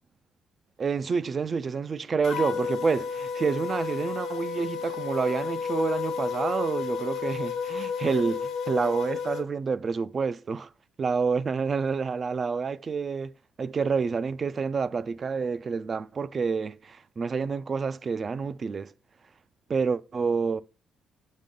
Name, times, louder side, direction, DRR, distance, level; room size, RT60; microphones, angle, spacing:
voice 1, 0.8-10.7 11.0-13.3 13.6-18.9 19.7-20.6, right 5 dB, 40° right, 0.4 m, -28 dB
sound 1, 2.2-9.4, left 6 dB, 85° left, 1.1 m, -31 dB
7.4 x 5.4 x 3.6 m
cardioid pair, 90°, 0 cm